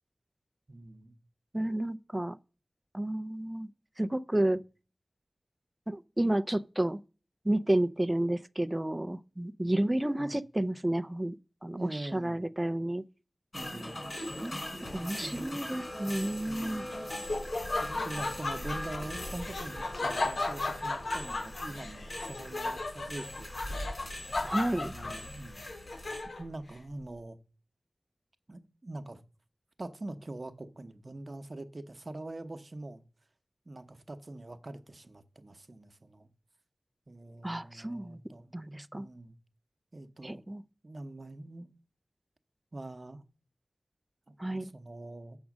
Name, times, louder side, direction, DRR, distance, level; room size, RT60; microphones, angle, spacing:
voice 1, 0.7-1.1 10.2-10.4 11.8-12.4 13.5-14.0 15.2-15.8 16.5-17.0 17.8-24.0 24.8-25.7 26.4-27.4 28.5-29.2 29.8-33.0 33.7-36.3 37.1-38.5 38.9-39.4 39.9-40.4 40.8-41.7 42.7-43.2 44.3-45.4, right 2 dB, 50° right, 0.9 m, -44 dB
voice 2, 1.5-2.4 2.9-3.7 4.0-4.6 5.9-7.0 7.4-11.4 11.6-13.0 14.4-16.9 24.4-24.9 37.4-38.2 38.5-39.1 40.2-40.6 44.4-44.7, right 1 dB, 20° right, 0.4 m, -31 dB
sound 1, 13.5-26.2, left 1 dB, 50° left, 3.7 m, -41 dB
Laughter, 16.5-26.5, left 2 dB, 85° left, 0.8 m, -36 dB
7.3 x 6.2 x 6.0 m
wide cardioid pair, 55°, 0 cm